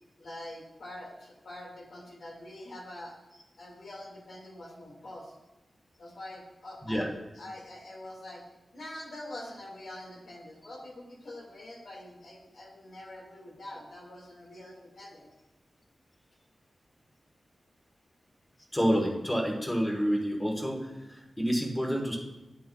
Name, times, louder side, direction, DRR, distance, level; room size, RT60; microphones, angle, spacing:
voice 1, 0.2-3.2 3.6-5.4 6.0-7.1 7.3-8.4 8.7-15.3, left 1 dB, 75° left, -2 dB, 1.9 m, -45 dB
voice 2, 18.7-22.2, equal, 15° left, 1 dB, 1.2 m, -28 dB
10.5 x 7.6 x 2.3 m, 1.0 s
wide cardioid pair, 130°, 0 cm